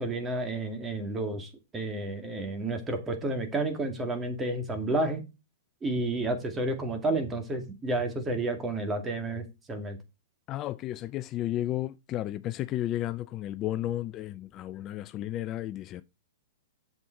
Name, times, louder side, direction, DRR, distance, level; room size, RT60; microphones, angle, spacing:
voice 1, 0.0-5.2 5.8-10.0, right 2 dB, 15° right, 2.2 m, -31 dB
voice 2, 10.5-16.0, left 13 dB, 35° left, 0.4 m, -33 dB
8.0 x 7.0 x 4.5 m
hypercardioid pair, 125°, 0 cm